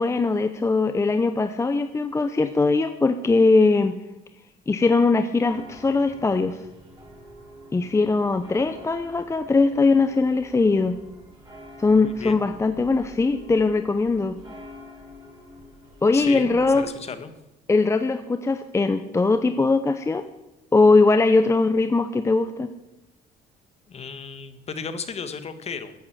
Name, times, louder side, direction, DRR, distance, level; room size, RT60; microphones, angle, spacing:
voice 1, 0.0-4.0 4.7-6.6 7.7-11.0 11.8-14.4 16.0-16.8 17.7-20.2 20.7-22.7, left 3 dB, 15° left, 9 dB, 0.7 m, -20 dB
sound 1, 5.4-16.8, left 1 dB, 25° right, 6.4 m, -47 dB
voice 2, 12.0-12.4 16.1-17.3 23.9-25.9, left 5 dB, 40° left, 10 dB, 1.5 m, -34 dB
14.0 x 9.3 x 7.7 m, 0.95 s
cardioid pair, 110°, 17 cm